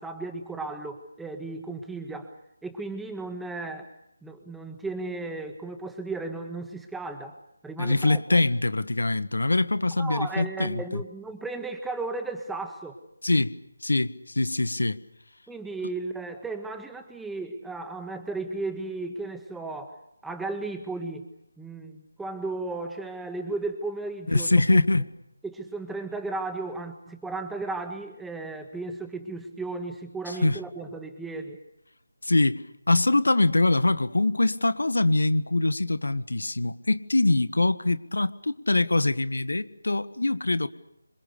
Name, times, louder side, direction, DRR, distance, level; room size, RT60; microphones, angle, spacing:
voice 1, 0.0-2.3 2.6-3.9 4.2-7.4 7.6-8.2 10.0-13.0 15.5-21.3 21.6-24.8 25.4-31.6, right 3 dB, 5° right, 6 dB, 1.7 m, -35 dB
voice 2, 7.8-11.0 13.2-13.6 13.8-15.0 24.3-25.1 30.3-30.6 32.2-40.7, left 2 dB, 70° left, 13 dB, 1.6 m, -23 dB
26.5 x 26.5 x 6.7 m, 0.79 s
figure-of-eight pair, 160°, 0 cm